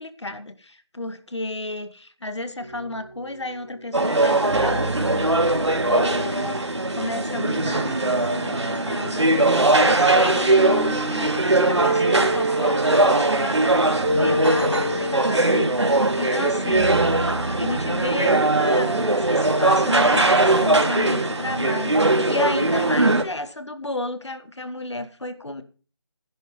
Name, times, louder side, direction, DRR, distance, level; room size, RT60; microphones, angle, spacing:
voice 1, 0.0-17.0 17.6-25.6, left 2 dB, 90° left, 10 dB, 2.3 m, -32 dB
sound 1, 2.6-3.8 4.5-7.1 7.6-18.1, right 1 dB, 25° right, 3.4 m, -30 dB
sound 2, 3.9-23.2, right 2 dB, 85° right, 3.2 m, -20 dB
15.5 x 11.0 x 3.4 m, 0.38 s
figure-of-eight pair, 175°, 14 cm